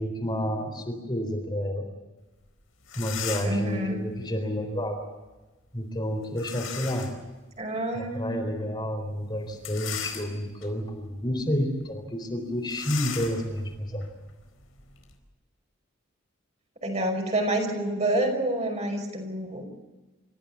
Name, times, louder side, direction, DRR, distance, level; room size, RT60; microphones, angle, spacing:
voice 1, 0.0-1.9 3.0-5.0 5.7-7.1 7.9-14.1, equal, 20° left, 3 dB, 4.0 m, -30 dB
sound 1, 2.5-2.6 2.8-3.7 6.4-7.2 7.8-7.9 9.5-10.6 11.2-11.4 11.7-11.8 12.7-15.1, left 8 dB, 80° left, 4.4 m, -37 dB
voice 2, 3.4-4.0 7.6-8.4 16.8-19.6, right 1 dB, 30° right, 2 dB, 5.4 m, -28 dB
30.0 x 15.5 x 8.4 m, 1.2 s
head